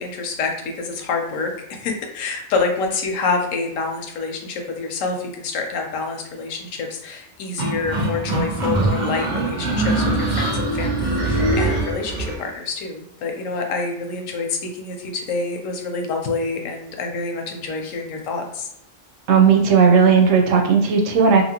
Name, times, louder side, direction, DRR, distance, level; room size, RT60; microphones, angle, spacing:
voice 1, 0.0-18.7, left 4 dB, 90° left, 3 dB, 1.0 m, -27 dB
sound 1, 7.6-12.4, right 2 dB, 50° right, 0.6 m, -22 dB
voice 2, 19.3-21.4, right 6 dB, 85° right, 2 dB, 1.0 m, -15 dB
2.8 x 2.5 x 2.8 m, 0.74 s
omnidirectional pair, 1.3 m